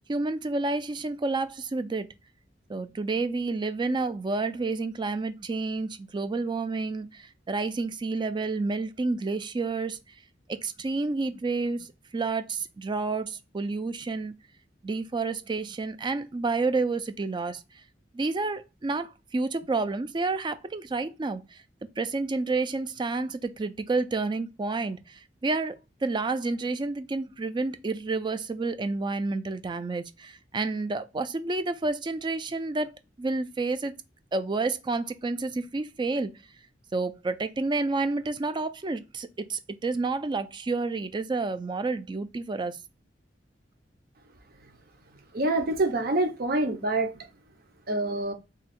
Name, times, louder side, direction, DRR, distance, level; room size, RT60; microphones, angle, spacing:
voice 1, 0.1-2.1 2.7-10.0 10.5-11.9 12.1-14.3 14.8-17.6 18.1-21.4 22.0-25.8 26.0-33.9 34.3-36.3 36.9-42.8, right 3 dB, 25° right, 0.4 m, -29 dB
voice 2, 45.3-47.3 47.9-48.3, right 2 dB, 55° right, 0.8 m, -26 dB
3.6 x 2.3 x 4.2 m
head